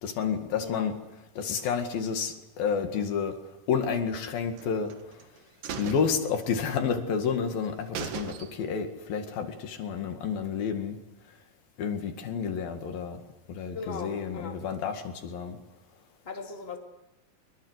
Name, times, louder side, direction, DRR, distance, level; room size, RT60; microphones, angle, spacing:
voice 1, 0.0-1.0 1.4-3.4 3.7-4.9 5.8-11.0 11.8-13.2 13.5-15.6, left 6 dB, 80° left, 5 dB, 3.8 m, -30 dB
sound 1, 4.6-5.2 5.6-6.9 7.2-7.3 7.6-7.7 8.0-8.9 9.2-9.3, right 7 dB, 70° right, 3.3 m, -38 dB
voice 2, 13.7-14.6 16.2-16.8, left 4 dB, 20° left, 2 dB, 2.5 m, -38 dB
24.5 x 23.0 x 8.1 m, 0.99 s
omnidirectional pair, 4.1 m